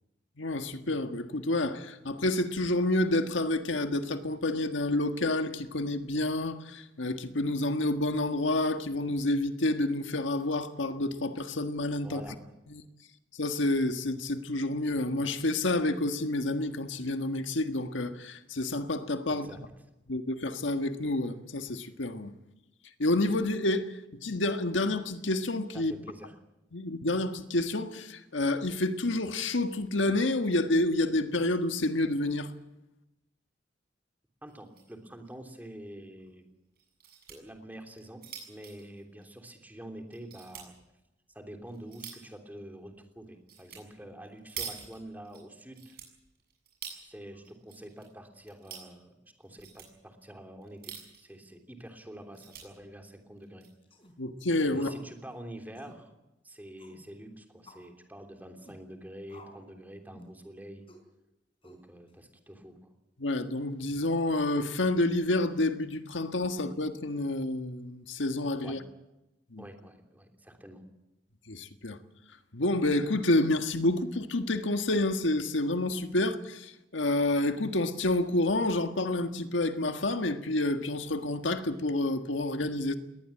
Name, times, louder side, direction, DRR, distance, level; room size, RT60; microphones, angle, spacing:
voice 1, 0.4-12.2 12.7-12.8 13.4-19.5 20.1-22.3 23.0-25.9 26.7-32.5 54.2-54.9 63.2-68.8 69.5-69.6 71.5-72.0 72.5-83.0, left 2 dB, 90° left, 1.6 m, -29 dB
voice 2, 12.0-12.5 19.4-19.6 25.7-26.3 34.4-36.4 37.3-40.7 41.3-46.0 47.0-49.1 49.4-53.6 54.7-56.1 56.4-60.8 61.6-62.9 68.6-68.8 69.6-70.8, right 1 dB, 10° right, 3.2 m, -47 dB
sound 1, 34.5-34.9 35.3-35.4 35.6-35.7 36.7-37.4 37.9-39.7 40.1-40.7 41.3-42.3 43.5-43.8 44.1-45.4 45.7-47.0 47.4-48.0 48.3-48.9 49.4-49.9 50.6-51.3 51.8-51.9 52.2-52.6 53.4-53.7, right 8 dB, 55° right, 7.5 m, -45 dB
sound 2, 53.8-54.1 54.7-55.1 55.3-55.4 55.7-56.0 56.8-57.0 57.7-57.9 58.6-58.8 59.3-59.7 60.1-60.4 60.9-61.1 61.6-62.1, left 1 dB, 30° left, 4.5 m, -53 dB
21.0 x 19.0 x 8.7 m
head